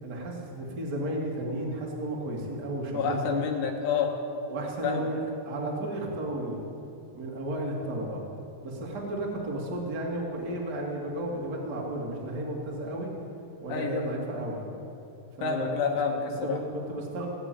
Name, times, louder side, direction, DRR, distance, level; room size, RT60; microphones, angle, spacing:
voice 1, 0.0-3.5 4.5-6.6 7.1-8.2 8.6-13.1 13.6-14.7 15.4-16.0 16.4-17.3, right 1 dB, 35° right, -2 dB, 2.4 m, -33 dB
voice 2, 2.9-4.1 4.8-5.1 13.7-14.0 15.4-16.6, left 6 dB, 70° left, 2 dB, 2.5 m, -28 dB
17.0 x 7.0 x 9.1 m, 3.0 s
omnidirectional pair, 3.9 m